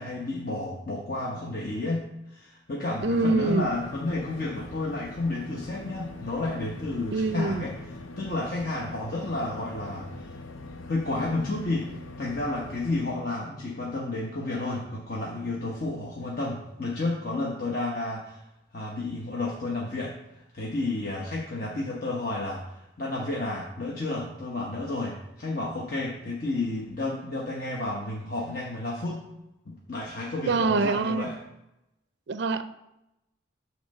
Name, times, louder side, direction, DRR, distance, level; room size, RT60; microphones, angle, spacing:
voice 1, 0.0-7.8 8.2-10.4 10.9-18.4 18.7-29.3 29.7-31.4, left 2 dB, 45° left, -3 dB, 1.0 m, -31 dB
sound 1, 3.0-13.0, left 2 dB, 80° left, 0.6 m, -42 dB
voice 2, 3.0-3.7 7.1-7.6 30.5-31.3 32.3-32.6, right 3 dB, 60° right, 11 dB, 0.4 m, -25 dB
8.9 x 3.1 x 6.5 m, 0.89 s
head